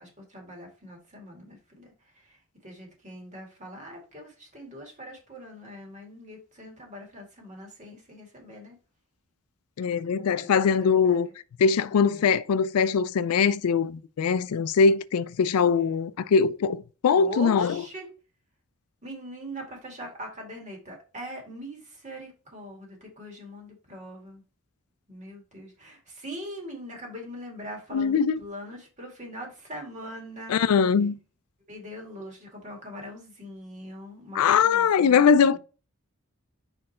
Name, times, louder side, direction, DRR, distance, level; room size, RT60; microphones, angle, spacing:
voice 1, 0.0-8.8 10.8-11.3 12.1-12.3 15.8-16.1 17.1-18.1 19.0-24.4 25.1-30.6 31.7-35.6, equal, 35° right, 2.2 m, -42 dB
voice 2, 9.8-11.3 11.6-17.8 27.9-28.4 30.5-31.2 34.4-35.6, left 6 dB, 90° left, 0.4 m, -22 dB
5.2 x 4.3 x 4.3 m
head